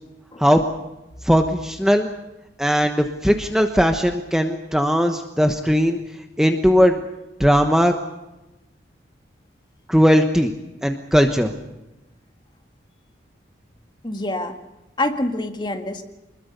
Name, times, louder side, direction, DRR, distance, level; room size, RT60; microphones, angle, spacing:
voice 1, 1.2-2.1 2.6-6.0 6.4-7.0 7.4-7.9 9.9-10.5 10.8-11.5, equal, 5° right, 5 dB, 1.1 m, -18 dB
voice 2, 14.0-14.6 15.0-16.0, left 1 dB, 25° left, 5 dB, 1.9 m, -26 dB
25.5 x 21.5 x 6.8 m, 1.0 s
head